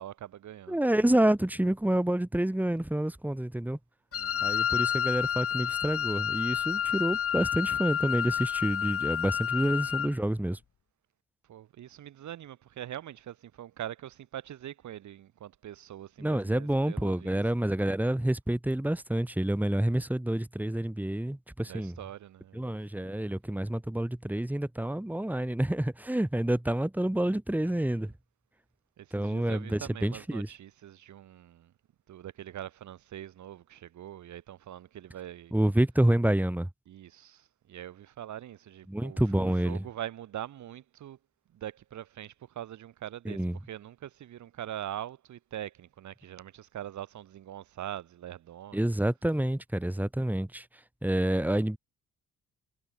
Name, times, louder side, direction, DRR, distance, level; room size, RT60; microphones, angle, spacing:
voice 1, 0.0-1.0 4.1-4.6 9.7-10.1 11.5-17.4 21.6-23.2 27.7-28.1 29.0-31.7 32.1-35.6 36.9-41.2 41.5-48.9, right 11 dB, 70° right, 4.1 m, -43 dB
voice 2, 0.7-3.8 4.4-10.6 16.2-21.9 22.5-28.1 29.1-30.5 35.5-36.7 38.9-39.8 43.3-43.5 48.7-50.7 51.0-51.8, right 1 dB, 5° right, 3.6 m, -28 dB
Wind instrument woodwind instrument, 4.1-10.2, left 9 dB, 50° left, 1.3 m, -30 dB
cardioid pair, 90°, 30 cm